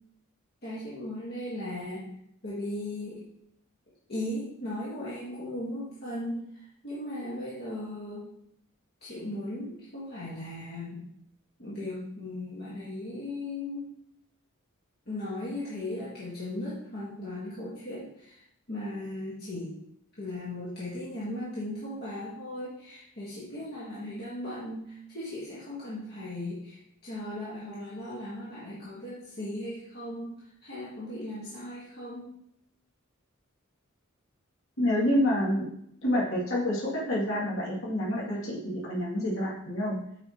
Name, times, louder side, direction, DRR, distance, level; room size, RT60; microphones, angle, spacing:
voice 1, 0.6-2.1 2.4-3.2 4.1-8.3 9.0-11.0 11.6-13.9 15.1-18.4 18.7-19.7 20.2-32.3, left 1 dB, 50° left, -8 dB, 1.4 m, -37 dB
voice 2, 34.8-35.7 36.0-40.0, left 1 dB, 70° left, -7 dB, 2.3 m, -28 dB
8.6 x 4.6 x 2.9 m, 0.74 s
head